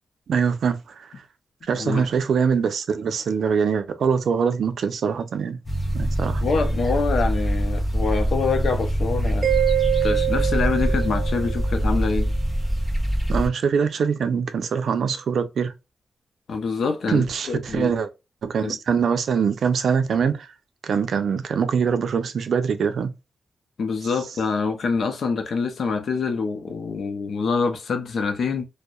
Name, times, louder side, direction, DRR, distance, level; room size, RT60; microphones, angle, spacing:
voice 1, 0.3-1.1 1.7-5.6 5.9-6.4 13.3-15.7 17.1-18.1 18.4-20.5 20.8-23.1, right 6 dB, 75° right, 0.4 m, -23 dB
voice 2, 1.7-2.1 6.4-9.6 10.0-12.3 16.5-17.9 18.6-18.8 23.8-28.6, left 5 dB, 70° left, 0.5 m, -25 dB
sound 1, 5.7-13.5, equal, 15° left, 0.9 m, -24 dB
Mallet percussion, 9.4-12.0, right 14 dB, 35° right, 0.7 m, -25 dB
2.6 x 2.0 x 2.3 m
cardioid pair, 100°, 0 cm